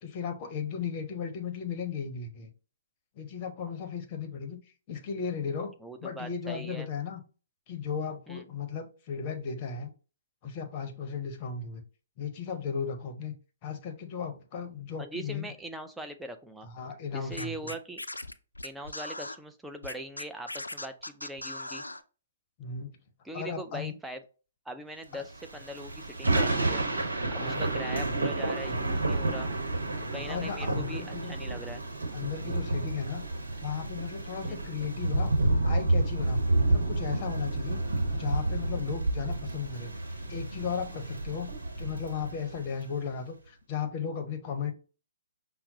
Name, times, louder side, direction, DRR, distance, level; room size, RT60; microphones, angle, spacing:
voice 1, 0.0-2.5 3.2-4.6 4.9-5.7 6.0-7.2 7.7-9.9 10.4-11.8 12.2-13.3 13.6-15.5 16.6-17.7 22.6-23.0 23.3-23.9 25.1-25.2 27.3-27.6 30.3-31.3 32.1-33.2 33.6-35.3 35.7-37.8 38.1-39.9 40.3-41.5 41.8-44.7, left 6 dB, 35° left, 5 dB, 0.7 m, -35 dB
voice 2, 5.8-6.9 8.3-8.4 15.0-16.7 17.1-18.0 18.6-21.8 23.2-24.2 24.7-26.9 27.3-29.5 30.1-31.8 34.4-34.6, right 1 dB, 5° right, 6 dB, 0.4 m, -41 dB
Scratching (performance technique), 17.3-19.4 19.8-22.0, left 1 dB, 85° left, 0.3 m, -39 dB
Thunder / Rain, 25.4-42.9, right 2 dB, 75° right, 1.0 m, -30 dB
5.6 x 2.0 x 2.8 m, 0.36 s
figure-of-eight pair, 125°, 0 cm